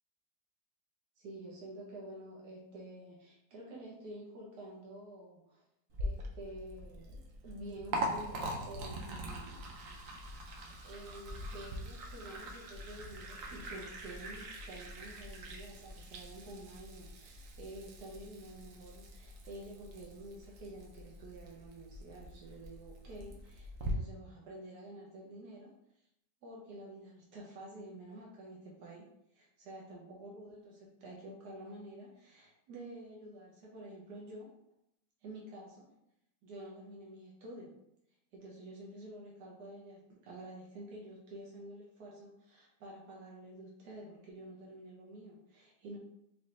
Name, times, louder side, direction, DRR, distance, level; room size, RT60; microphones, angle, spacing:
voice 1, 1.2-5.6 6.0-9.6 10.8-25.7 26.4-29.1 29.3-34.5 35.2-35.9 36.4-37.7 38.3-46.0, right 1 dB, 85° right, -3 dB, 1.4 m, -49 dB
Liquid, 5.9-23.9, right 1 dB, 65° right, 1.0 m, -43 dB
4.5 x 2.9 x 3.2 m, 0.78 s
omnidirectional pair, 1.7 m